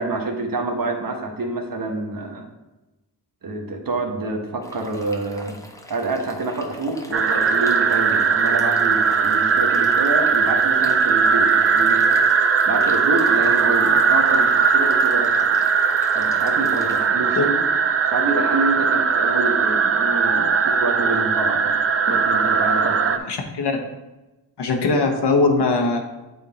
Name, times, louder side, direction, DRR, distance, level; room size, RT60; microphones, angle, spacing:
voice 1, 0.0-2.5 3.4-5.6 5.9-15.5 16.1-17.5 18.1-23.3, right 2 dB, 60° right, 3 dB, 1.1 m, -27 dB
sound 1, 4.6-17.1, left 1 dB, 10° left, 0.7 m, -42 dB
sound 2, 7.1-23.2, right 5 dB, 35° right, 0.4 m, -19 dB
voice 2, 23.3-23.8 24.6-26.0, left 3 dB, 80° left, 2 dB, 1.1 m, -20 dB
8.0 x 3.6 x 4.1 m, 1.0 s
wide cardioid pair, 80°, 39 cm